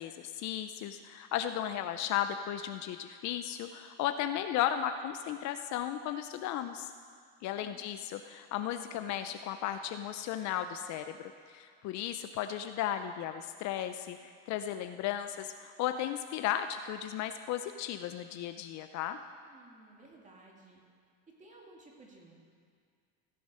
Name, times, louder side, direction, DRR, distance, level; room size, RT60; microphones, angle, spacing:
voice 1, 0.0-6.9 7.4-19.2, left 11 dB, 55° left, 9 dB, 0.6 m, -35 dB
voice 2, 7.5-7.9 19.4-20.8 21.4-22.3, right 2 dB, 20° right, -1 dB, 2.4 m, -56 dB
16.0 x 6.7 x 5.5 m, 2.1 s
supercardioid pair, 120°, 35 cm